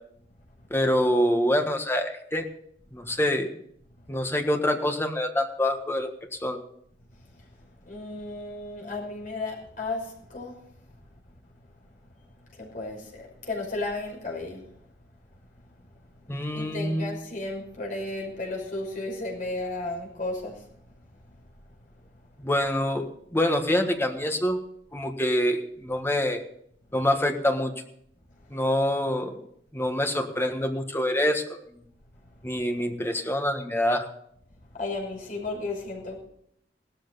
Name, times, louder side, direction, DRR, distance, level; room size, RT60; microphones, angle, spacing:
voice 1, 0.7-2.4 2.9-3.5 4.1-6.1 6.4-6.6 16.3-17.2 22.4-24.6 24.9-26.4 26.9-27.7 28.5-29.4 29.7-31.6 32.4-34.1, left 1 dB, 15° left, 5 dB, 1.5 m, -26 dB
voice 2, 7.8-10.6 12.5-14.6 16.5-20.6 34.7-36.2, left 2 dB, 50° left, -1 dB, 5.8 m, -34 dB
17.0 x 13.5 x 4.1 m, 0.70 s
head